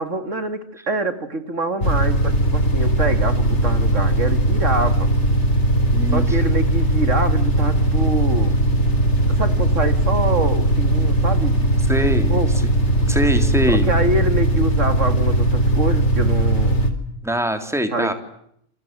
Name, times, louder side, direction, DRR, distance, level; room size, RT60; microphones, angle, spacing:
voice 1, 0.0-5.1 6.1-8.6 9.4-11.7 12.3-12.5 13.7-16.8 17.9-18.1, right 2 dB, 70° right, 9 dB, 2.8 m, -25 dB
sound 1, 1.8-16.9, right 1 dB, 60° left, 4.3 m, -18 dB
voice 2, 5.9-6.4 11.9-12.4 13.1-13.9 17.2-18.1, right 1 dB, ahead, 7 dB, 3.3 m, -22 dB
28.5 x 26.5 x 7.6 m, 0.73 s
omnidirectional pair, 1.3 m